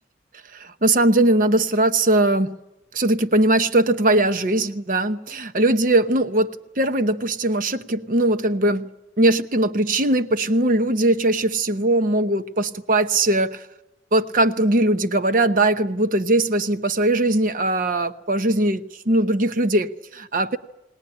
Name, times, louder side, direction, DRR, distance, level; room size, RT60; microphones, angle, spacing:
voice 1, 0.5-2.5 2.9-8.9 9.2-13.6 14.1-20.6, right 1 dB, 50° right, 10 dB, 0.9 m, -20 dB
20.0 x 19.5 x 9.9 m, 0.91 s
head